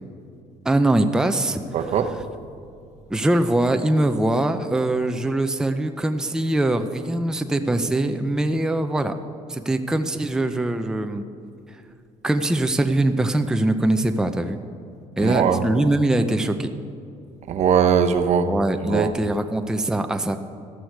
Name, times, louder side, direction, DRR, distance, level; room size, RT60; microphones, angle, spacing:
voice 1, 0.6-1.6 3.1-9.1 9.5-11.2 12.2-14.6 15.2-16.7 18.5-20.4, right 1 dB, 5° right, 7 dB, 0.6 m, -22 dB
voice 2, 1.7-2.1 15.2-15.6 17.5-18.5 18.8-19.1, right 7 dB, 55° right, 8 dB, 0.9 m, -20 dB
13.0 x 12.5 x 4.7 m, 2.5 s
cardioid pair, 105°, 14 cm